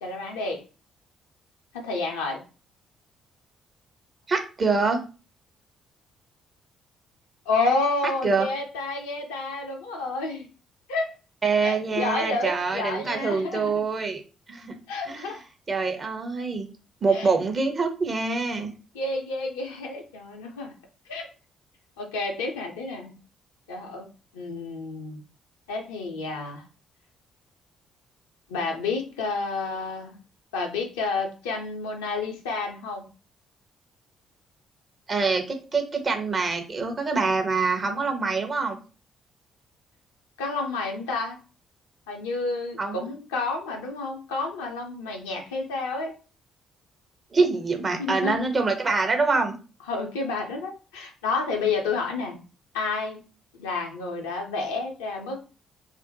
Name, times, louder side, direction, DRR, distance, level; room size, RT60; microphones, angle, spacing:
voice 1, 0.0-0.6 1.7-2.4 7.5-10.5 10.9-11.1 11.6-13.7 14.9-15.4 17.1-17.3 18.9-20.7 21.1-21.3 22.0-23.1 23.7-24.1 24.3-25.2 25.7-26.6 28.5-30.2 30.5-33.0 40.4-41.4 42.1-46.1 48.0-48.4 49.9-52.4 52.7-53.2 53.6-55.4, left 3 dB, 75° left, 1 dB, 0.6 m, -30 dB
voice 2, 4.3-5.1 8.2-8.5 11.4-14.2 14.5-14.8 15.0-15.3 15.7-16.7 17.0-18.7 35.1-38.8 42.8-43.0 47.3-49.6, right 4 dB, 35° right, 5 dB, 0.7 m, -25 dB
2.5 x 2.1 x 3.8 m, 0.34 s
figure-of-eight pair, 45°, 0 cm